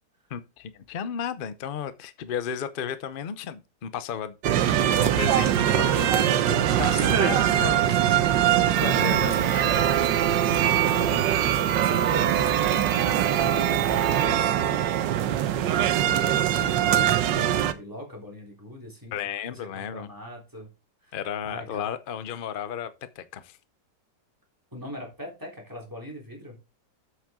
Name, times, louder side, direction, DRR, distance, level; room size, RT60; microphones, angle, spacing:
voice 1, 0.3-9.8 10.3-11.0 19.1-20.1 21.1-22.9 23.2-23.6, left 8 dB, 60° left, 0.5 m, -34 dB
sound 1, 4.4-17.7, right 11 dB, 90° right, 1.4 m, -22 dB
sound 2, 4.6-14.4, right 3 dB, 60° right, 2.7 m, -39 dB
sound 3, 8.7-14.3, right 7 dB, 30° right, 1.2 m, -43 dB
voice 2, 10.9-14.8 15.7-19.1 19.5-20.7 21.0-21.2 21.4-21.8 24.7-26.5, left 1 dB, 10° right, 3.4 m, -41 dB
8.0 x 7.6 x 3.7 m
omnidirectional pair, 1.9 m